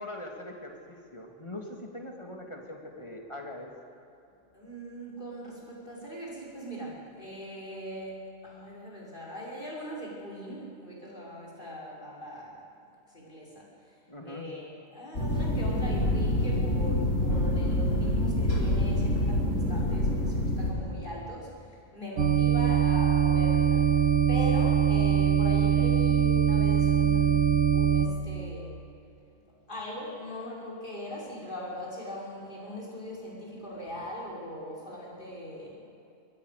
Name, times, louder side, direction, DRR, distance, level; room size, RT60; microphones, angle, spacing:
voice 1, 0.0-3.7 14.1-14.4, left 1 dB, 25° left, 1 dB, 2.9 m, -42 dB
voice 2, 4.5-12.7 13.1-14.0 14.2-28.8 29.7-35.9, equal, 40° left, -3 dB, 5.8 m, -40 dB
sound 1, 15.1-20.7, left 1 dB, 85° left, 4.1 m, -26 dB
sound 2, 22.2-28.1, right 8 dB, 55° right, 1.7 m, -23 dB
24.0 x 20.0 x 6.8 m, 2.7 s
omnidirectional pair, 1.3 m